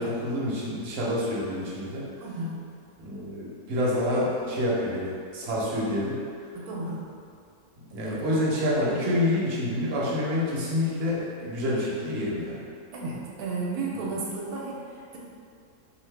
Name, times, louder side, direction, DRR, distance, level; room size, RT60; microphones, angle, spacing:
voice 1, 0.0-2.1 3.0-6.2 7.9-12.6, left 1 dB, 55° right, -6 dB, 0.8 m, -27 dB
voice 2, 2.2-2.6 6.5-7.0 7.9-8.2 12.9-15.2, right 3 dB, 85° right, -4 dB, 1.1 m, -33 dB
2.6 x 2.5 x 3.2 m, 2.3 s
omnidirectional pair, 1.6 m